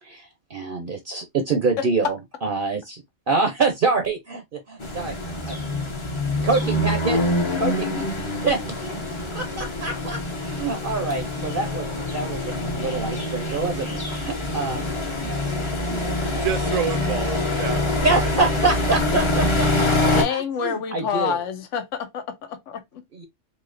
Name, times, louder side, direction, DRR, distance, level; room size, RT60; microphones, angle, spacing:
voice 1, 0.0-3.0 3.3-5.1 5.4-5.6 6.4-8.9 9.3-14.9 15.2-15.4 15.9-16.5 18.0-21.4 23.1-23.2, right 3 dB, 50° right, 0.8 m, -26 dB
sound 1, 4.8-20.2, left 2 dB, 25° left, 0.8 m, -25 dB
voice 2, 16.4-18.4, right 10 dB, 80° right, 1.0 m, -29 dB
voice 3, 20.1-23.0, left 7 dB, 70° left, 1.1 m, -28 dB
4.1 x 2.8 x 2.5 m
omnidirectional pair, 1.3 m